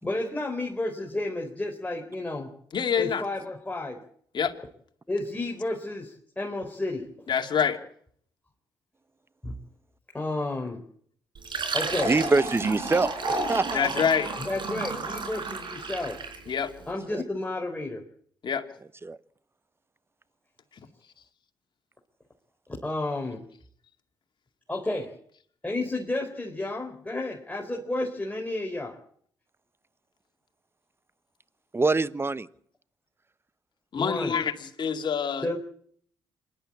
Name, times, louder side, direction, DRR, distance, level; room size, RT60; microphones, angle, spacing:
voice 1, 0.0-2.5 3.0-4.0 5.1-7.1 9.4-9.5 10.1-10.8 11.7-12.1 14.4-16.2 16.9-18.0 22.8-23.4 24.7-25.1 25.6-29.0 34.0-34.4 35.4-35.6, left 2 dB, 15° left, 0 dB, 3.9 m, -31 dB
voice 2, 2.7-3.2 4.3-4.5 7.3-7.8 13.7-14.3 16.5-16.7 18.4-18.6 33.9-35.6, left 7 dB, 55° left, 5 dB, 2.4 m, -26 dB
Fill (with liquid), 11.4-16.5, right 3 dB, 55° right, 4.8 m, -32 dB
voice 3, 12.0-13.9 17.1-17.2 19.0-19.2 31.7-32.5, right 3 dB, 25° right, 17 dB, 1.0 m, -25 dB
26.5 x 11.5 x 8.6 m, 0.63 s
hypercardioid pair, 50°, 10 cm